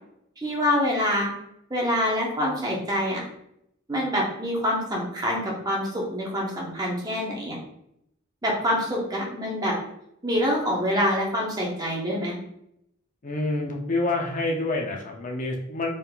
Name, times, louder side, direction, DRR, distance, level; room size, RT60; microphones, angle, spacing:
voice 1, 0.4-1.3 1.7-3.2 3.9-7.6 8.4-9.7 10.2-12.4, equal, 20° right, -3 dB, 0.9 m, -26 dB
voice 2, 13.2-15.9, left 2 dB, 40° left, 0 dB, 0.6 m, -27 dB
4.1 x 3.7 x 2.3 m, 0.76 s
head